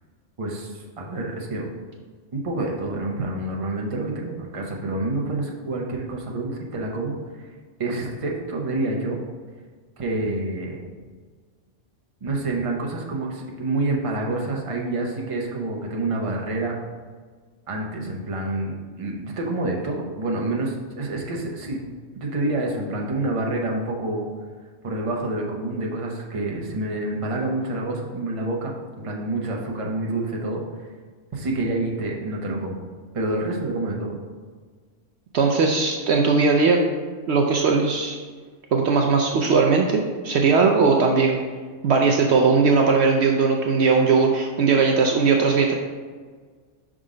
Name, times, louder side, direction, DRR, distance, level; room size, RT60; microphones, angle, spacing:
voice 1, 0.4-1.7 2.3-7.5 7.8-9.2 10.0-10.8 12.2-16.7 17.7-21.8 22.2-24.3 24.8-30.9 31.3-32.8 33.1-34.2, right 2 dB, 30° right, -1 dB, 0.7 m, -28 dB
voice 2, 35.3-36.8 37.3-38.2 38.7-41.4 41.8-45.7, right 4 dB, 65° right, 2 dB, 0.8 m, -19 dB
5.2 x 3.7 x 4.9 m, 1.5 s
omnidirectional pair, 1.3 m